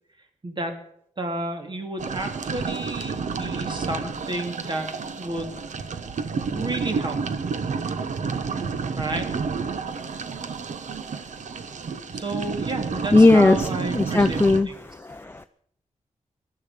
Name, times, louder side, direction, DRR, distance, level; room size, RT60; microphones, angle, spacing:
voice 1, 1.2-5.5 6.5-7.2 9.0-9.2 12.1-14.8, right 2 dB, 40° right, 5 dB, 2.7 m, -31 dB
sound 1, 2.0-14.6, right 5 dB, 80° right, 1.3 m, -30 dB
voice 2, 13.1-13.7 13.9-15.5, left 3 dB, 20° left, 7 dB, 0.5 m, -18 dB
19.5 x 12.0 x 5.1 m, 0.68 s
wide cardioid pair, 125°, 12 cm